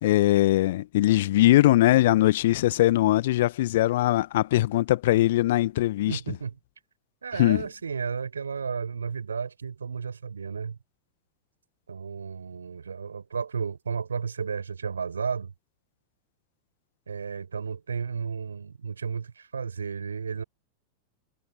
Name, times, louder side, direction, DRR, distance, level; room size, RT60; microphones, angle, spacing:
voice 1, 0.0-6.2 7.4-7.6, left 15 dB, 55° left, 1.7 m, -21 dB
voice 2, 6.1-6.6 7.2-10.8 11.9-15.5 17.1-20.4, right 6 dB, 70° right, 6.1 m, -33 dB
figure-of-eight pair, 90°, 0 cm